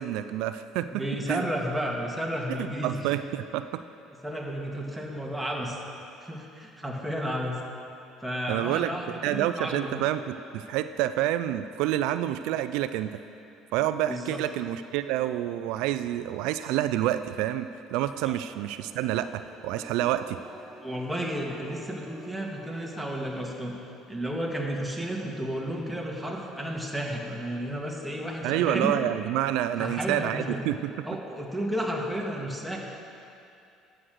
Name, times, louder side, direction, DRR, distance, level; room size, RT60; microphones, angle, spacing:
voice 1, 0.0-0.9 1.3-1.4 2.8-3.8 8.5-9.0 9.2-13.2 13.7-20.4 28.4-30.9, right 13 dB, 80° right, 11 dB, 0.3 m, -28 dB
voice 2, 0.9-3.0 4.2-5.8 6.2-7.6 8.2-10.0 14.1-14.4 18.3-18.4 20.8-23.8 24.1-28.9 29.8-30.6 31.0-32.8, equal, ahead, -2 dB, 1.8 m, -32 dB
sound 1, 18.6-23.7, right 1 dB, 20° right, 2.2 m, -49 dB
11.0 x 7.7 x 6.5 m, 2.6 s
supercardioid pair, 100°, 0 cm